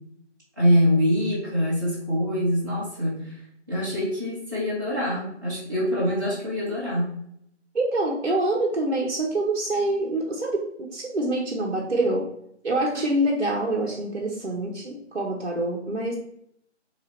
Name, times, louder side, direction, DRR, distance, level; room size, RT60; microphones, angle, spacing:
voice 1, 0.6-3.4 3.7-7.0, equal, 15° right, -10 dB, 0.8 m, -24 dB
voice 2, 7.7-12.3 12.6-16.2, right 1 dB, 60° right, -1 dB, 0.8 m, -26 dB
4.7 x 2.8 x 3.1 m, 0.73 s
figure-of-eight pair, 160°, 36 cm